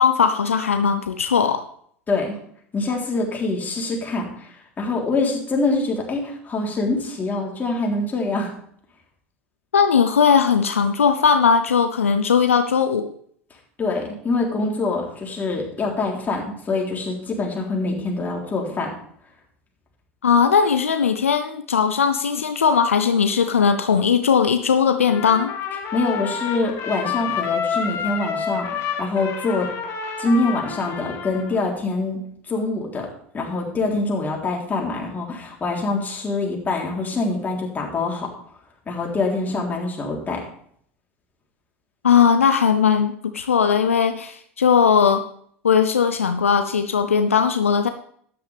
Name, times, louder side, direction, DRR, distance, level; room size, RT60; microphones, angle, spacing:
voice 1, 0.0-1.6 9.7-13.1 20.2-25.5 42.0-45.2 45.6-47.9, left 6 dB, 85° left, 9 dB, 0.6 m, -18 dB
voice 2, 2.7-8.5 13.8-18.9 25.9-29.7 30.2-32.2 32.5-33.1 33.3-38.3 38.9-40.4, left 3 dB, 25° left, -1 dB, 3.6 m, -25 dB
Trumpet, 25.1-31.7, left 6 dB, 45° left, 2.3 m, -29 dB
13.0 x 10.0 x 3.5 m, 0.62 s
figure-of-eight pair, 75°, 7 cm